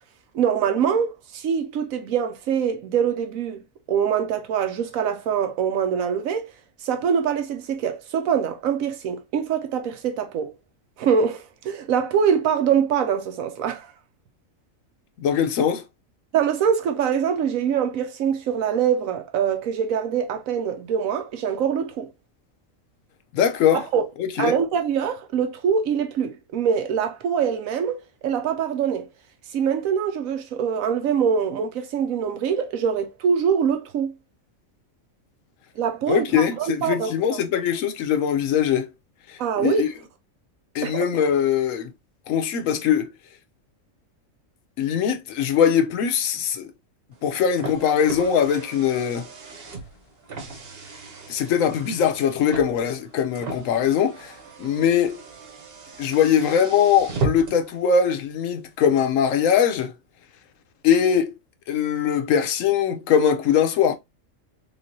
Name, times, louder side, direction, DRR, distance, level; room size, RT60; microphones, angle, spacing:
voice 1, 0.3-3.6 3.9-6.5 6.8-10.5 11.0-13.9 16.3-22.1 23.7-24.0 24.4-29.1 29.5-34.1 35.8-37.4 39.4-39.9 40.8-41.2, right 7 dB, 90° right, 1.1 m, -24 dB
voice 2, 15.2-15.8 23.3-23.9 24.2-24.6 36.1-38.9 39.3-39.9 40.7-41.9 42.3-43.1 44.8-46.7 47.2-49.3 51.3-55.2 56.0-59.9 60.8-61.3 61.7-63.9, left 8 dB, 75° left, 1.0 m, -21 dB
Car, 47.1-57.7, right 3 dB, 50° right, 1.0 m, -36 dB
3.5 x 3.2 x 2.6 m
omnidirectional pair, 1.4 m